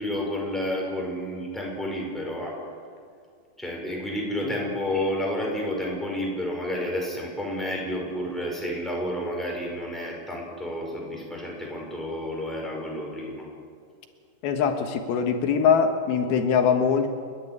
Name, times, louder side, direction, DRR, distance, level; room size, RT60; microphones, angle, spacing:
voice 1, 0.0-2.5 3.6-13.5, left 1 dB, ahead, -2 dB, 5.3 m, -30 dB
voice 2, 14.4-17.1, left 6 dB, 80° left, 6 dB, 3.2 m, -22 dB
30.0 x 11.5 x 9.8 m, 2.2 s
omnidirectional pair, 4.3 m